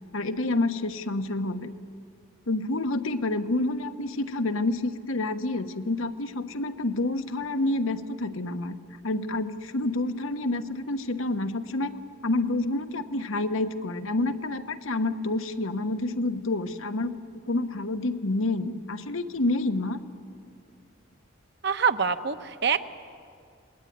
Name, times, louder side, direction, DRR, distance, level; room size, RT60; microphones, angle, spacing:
voice 1, 0.1-1.7 2.5-8.8 9.0-12.0 12.2-17.2 17.5-20.0, left 2 dB, 85° left, 8 dB, 1.2 m, -28 dB
voice 2, 21.6-22.9, right 6 dB, 55° right, 9 dB, 0.9 m, -25 dB
26.5 x 21.0 x 9.4 m, 2.4 s
head